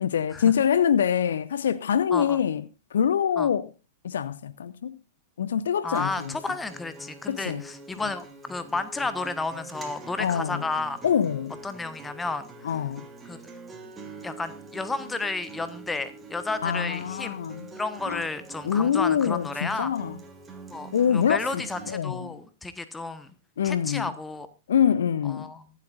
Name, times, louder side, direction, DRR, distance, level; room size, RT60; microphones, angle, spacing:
voice 1, 0.0-2.6 2.9-3.7 4.0-5.0 5.4-6.4 7.3-7.6 10.2-10.6 11.0-11.6 12.6-13.1 16.6-17.7 18.0-18.2 18.6-20.2 20.9-22.4 23.6-24.1 24.7-25.5, left 8 dB, 65° left, 0.6 m, -25 dB
voice 2, 5.8-11.0 11.6-12.8 13.2-13.4 14.2-17.4 17.7-19.9 20.7-23.3 23.6-24.5 25.3-25.7, left 3 dB, 10° left, 1.3 m, -32 dB
Acoustic guitar, 5.9-21.9, right 3 dB, 15° right, 2.8 m, -44 dB
24.5 x 8.1 x 2.5 m
figure-of-eight pair, 100°, 0 cm